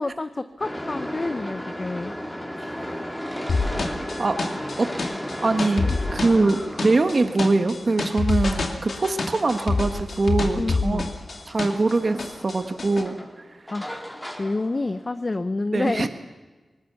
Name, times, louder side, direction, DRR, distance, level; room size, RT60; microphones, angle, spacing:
voice 1, 0.0-2.1 6.3-6.5 10.5-11.1 13.7-14.1 14.4-16.1, left 2 dB, 40° left, 11 dB, 0.8 m, -28 dB
sound 1, 0.6-15.3, equal, 10° left, 3.9 m, -36 dB
sound 2, 3.5-11.9 12.2-13.0, left 3 dB, 65° left, 2.2 m, -27 dB
voice 2, 5.4-11.0 11.4-13.4 15.7-16.1, right 3 dB, 50° right, 7 dB, 1.4 m, -23 dB
19.5 x 19.0 x 7.1 m, 1.3 s
cardioid pair, 50°, 0 cm